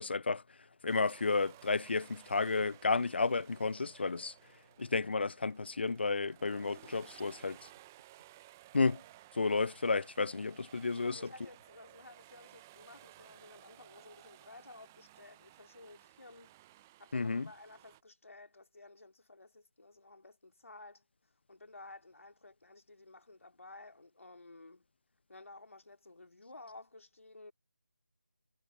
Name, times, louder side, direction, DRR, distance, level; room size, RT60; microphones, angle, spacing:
voice 1, 0.0-4.4 4.8-7.7 8.7-9.0 9.3-11.3 17.1-17.5, left 4 dB, 45° left, 0.4 m, -32 dB
sound 1, 0.9-18.0, right 16 dB, 10° right, 0.7 m, -58 dB
sound 2, 2.2-11.1, right 3 dB, 50° right, 6.9 m, -70 dB
voice 2, 11.0-16.6 17.0-21.0 21.5-24.8 25.3-27.5, left 2 dB, 65° left, 3.4 m, -54 dB
figure-of-eight pair, 165°, 8 cm